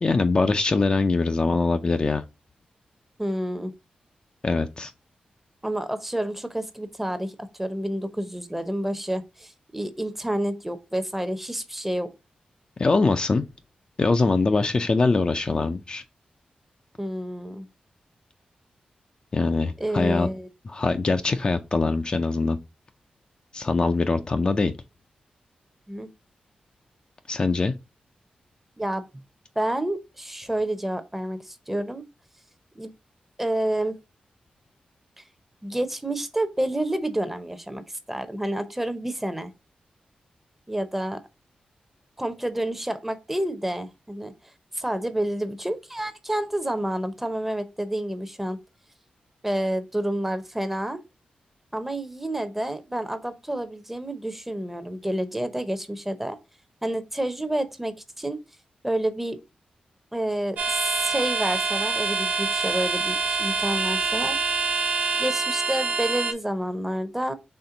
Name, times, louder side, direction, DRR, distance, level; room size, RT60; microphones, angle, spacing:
voice 1, 0.0-2.2 4.4-4.9 12.8-13.4 14.0-16.0 19.3-20.3 20.7-22.6 23.5-24.7 27.3-27.7, left 3 dB, 35° left, 0.4 m, -23 dB
voice 2, 3.2-3.7 5.6-12.1 17.0-17.7 19.8-20.5 25.9-26.1 28.8-29.1 29.6-32.0 32.8-32.9 33.4-34.0 35.2-35.3 35.6-37.8 38.1-39.5 40.7-41.2 42.2-44.3 44.7-48.6 49.4-51.0 51.7-56.4 56.8-58.4 58.8-59.4 60.1-64.4 65.2-67.3, right 1 dB, 10° right, 0.7 m, -29 dB
sound 1, 60.6-66.3, right 4 dB, 75° right, 0.7 m, -26 dB
4.4 x 3.1 x 3.8 m
wide cardioid pair, 100°, 3 cm